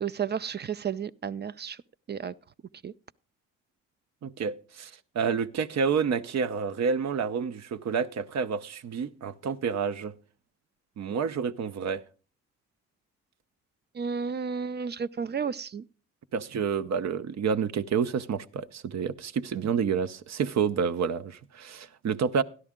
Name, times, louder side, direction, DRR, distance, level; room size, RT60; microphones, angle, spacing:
voice 1, 0.0-1.8 2.1-2.3 2.8-2.9 13.9-15.8, right 6 dB, 35° right, 0.4 m, -32 dB
voice 2, 4.2-10.1 11.0-12.0 16.3-22.4, right 6 dB, 55° right, 0.8 m, -29 dB
12.5 x 11.0 x 3.6 m
supercardioid pair, 55°, 32 cm